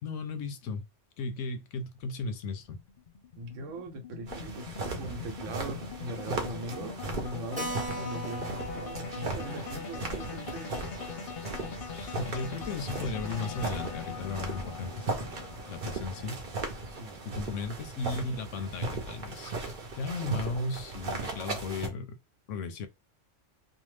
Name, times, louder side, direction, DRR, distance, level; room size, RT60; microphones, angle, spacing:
voice 1, 0.0-0.9 1.2-2.8 11.9-15.3 15.7-16.4 17.3-19.6 20.0-22.2 22.5-22.9, left 3 dB, 85° left, 0.9 m, -36 dB
sound 1, 2.0-18.4, left 7 dB, 55° left, 0.7 m, -42 dB
voice 2, 3.4-10.9 17.0-17.5, right 1 dB, 85° right, 1.0 m, -40 dB
sound 2, 4.3-21.9, right 3 dB, 50° right, 0.8 m, -38 dB
Keyboard (musical), 7.6-12.6 12.9-13.0 13.3-13.4 13.6-13.7 14.3-14.6, right 1 dB, 10° right, 0.8 m, -42 dB
2.7 x 2.2 x 3.1 m
omnidirectional pair, 1.3 m